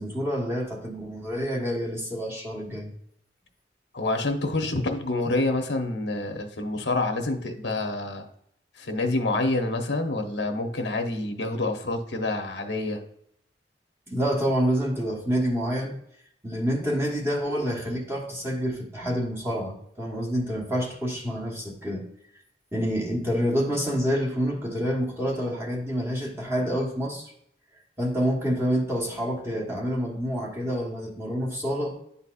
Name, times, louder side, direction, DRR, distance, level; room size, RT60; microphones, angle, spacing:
voice 1, 0.0-2.9 14.1-16.0 16.4-22.1 22.7-27.3 28.0-32.0, equal, 15° right, -3 dB, 1.1 m, -27 dB
voice 2, 3.9-8.2 8.7-13.0, left 2 dB, 80° left, 4 dB, 0.9 m, -27 dB
10.0 x 4.1 x 2.4 m, 0.71 s
head